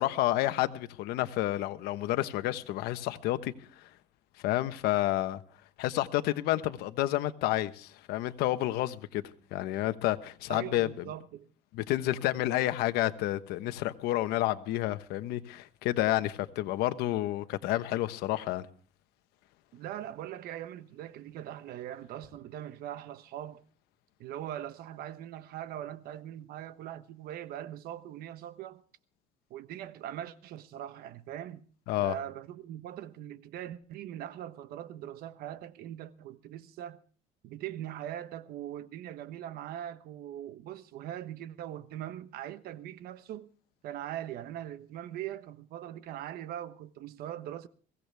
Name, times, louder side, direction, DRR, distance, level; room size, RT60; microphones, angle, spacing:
voice 1, 0.0-3.5 4.4-5.4 5.8-9.2 9.5-11.0 11.7-18.7 31.9-32.1, left 15 dB, 85° left, 1.2 m, -30 dB
voice 2, 10.5-11.5 19.7-23.6 24.2-28.8 29.5-31.6 32.0-37.0 37.4-43.5 43.8-47.7, right 11 dB, 75° right, 1.2 m, -41 dB
22.5 x 16.5 x 3.5 m
cardioid pair, 125°, 16 cm